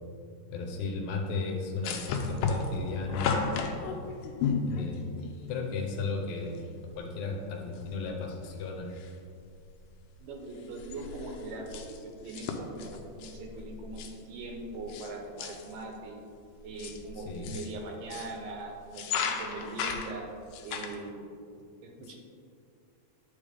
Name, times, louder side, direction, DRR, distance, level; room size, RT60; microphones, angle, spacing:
voice 1, 0.5-3.4 4.7-5.1 5.5-6.6 6.9-8.9 17.2-17.6, left 4 dB, 75° left, 2 dB, 2.0 m, -35 dB
sound 1, 1.8-5.4 6.6-6.7 6.9-7.0 7.7-8.1 8.4-9.3 9.6-9.9 10.2-15.1 15.4-15.8 16.5-18.4 18.8-21.0, left 5 dB, 90° left, 2.2 m, -34 dB
voice 2, 10.2-16.2 16.6-20.3 20.6-21.3 21.8-22.2, right 2 dB, 80° right, 1 dB, 2.5 m, -41 dB
10.0 x 5.0 x 3.5 m, 2.4 s
omnidirectional pair, 3.7 m